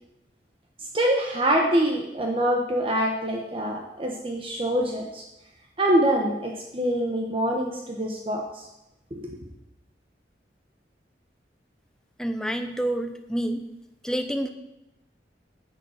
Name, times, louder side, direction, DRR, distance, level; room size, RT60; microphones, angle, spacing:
voice 1, 0.9-5.2 5.8-8.7 9.1-9.3, right 1 dB, 30° right, 1 dB, 1.1 m, -25 dB
voice 2, 12.2-13.6 14.0-14.5, right 1 dB, 5° left, 6 dB, 0.8 m, -28 dB
10.5 x 7.7 x 6.5 m, 0.91 s
head